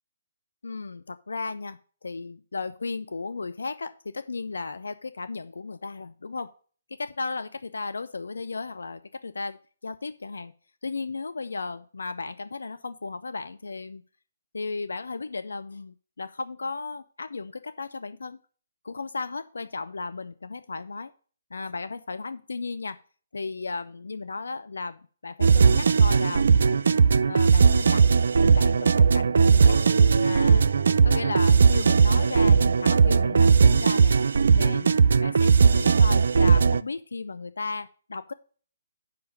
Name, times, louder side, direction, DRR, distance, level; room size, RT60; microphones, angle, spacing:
voice 1, 0.6-6.5 6.9-9.6 9.8-10.5 10.8-14.0 14.5-18.4 18.8-21.1 21.5-23.0 23.3-26.8 27.3-28.0 28.5-29.8 30.2-30.7 31.0-34.1 34.5-34.9 35.2-38.3, left 4 dB, 70° left, 11 dB, 0.5 m, -35 dB
sound 1, 25.4-36.8, right 5 dB, 60° right, 0.3 m, -18 dB
7.3 x 5.7 x 6.5 m, 0.42 s
figure-of-eight pair, 135°, 0 cm